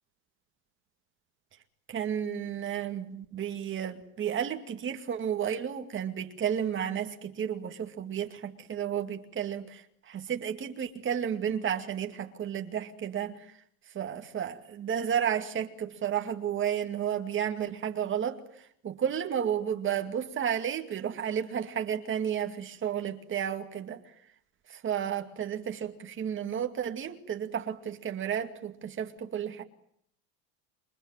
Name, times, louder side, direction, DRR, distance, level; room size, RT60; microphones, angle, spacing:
voice 1, 1.9-13.5 13.9-18.4 18.8-24.0 24.7-29.6, right 9 dB, 25° right, 2.3 m, -32 dB
28.0 x 23.0 x 9.0 m
supercardioid pair, 145°, 47 cm